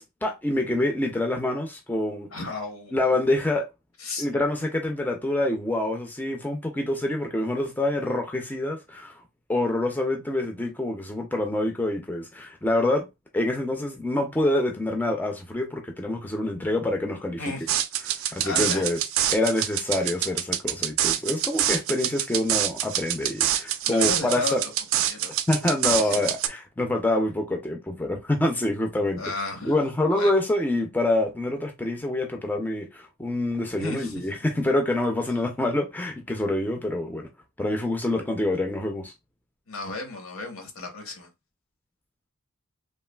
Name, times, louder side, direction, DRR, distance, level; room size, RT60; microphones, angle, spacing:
voice 1, 0.0-2.3 2.9-3.7 4.2-9.2 9.5-13.1 13.3-17.5 18.0-19.0 19.3-24.6 25.5-29.2 29.6-37.3 37.6-39.1, left 1 dB, 10° left, 0.3 m, -26 dB
voice 2, 2.3-2.9 4.0-4.3 17.4-17.7 18.2-18.9 19.9-20.1 23.8-24.6 24.9-25.3 25.9-26.3 29.2-29.7 30.1-30.3 33.8-34.3 39.7-41.3, left 3 dB, 75° left, 0.9 m, -34 dB
sound 1, 17.7-26.5, right 11 dB, 65° right, 0.3 m, -26 dB
3.1 x 2.4 x 2.2 m
head